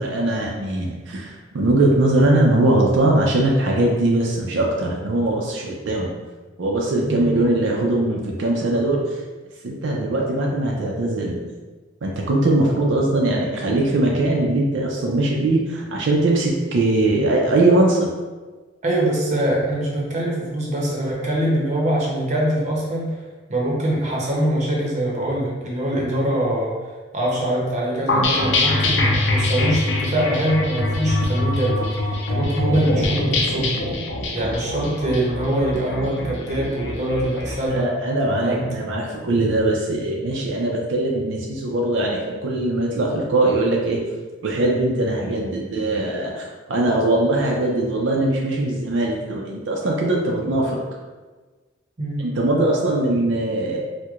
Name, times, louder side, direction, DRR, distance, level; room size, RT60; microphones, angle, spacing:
voice 1, 0.0-6.1 6.6-9.2 9.6-11.5 12.0-18.1 37.7-44.0 44.4-51.0 52.2-53.8, right 2 dB, 80° right, -1 dB, 0.5 m, -21 dB
voice 2, 18.8-23.2 23.5-26.7 27.1-33.8 34.3-37.9 38.4-38.7 52.0-52.3, right 1 dB, 40° right, -3 dB, 0.8 m, -23 dB
sound 1, 28.1-37.5, left 2 dB, 75° left, 0.5 m, -23 dB
4.4 x 2.1 x 2.4 m, 1.3 s
head